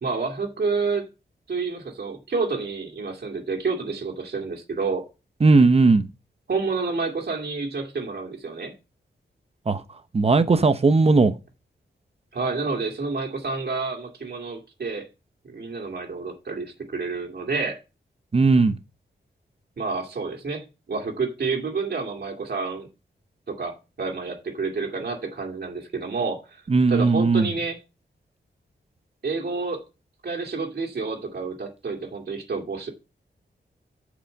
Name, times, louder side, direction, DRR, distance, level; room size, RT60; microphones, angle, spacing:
voice 1, 0.0-1.1 1.5-5.0 6.5-8.7 12.3-15.1 15.4-17.8 19.8-22.9 23.5-26.6 26.9-27.8 29.2-29.8 30.2-32.9, right 4 dB, 55° right, 2.2 m, -29 dB
voice 2, 5.4-6.1 9.7-9.8 10.1-11.3 18.3-18.7 26.7-27.5, right 3 dB, 30° right, 0.9 m, -17 dB
8.8 x 5.0 x 7.6 m
wide cardioid pair, 175°, 19 cm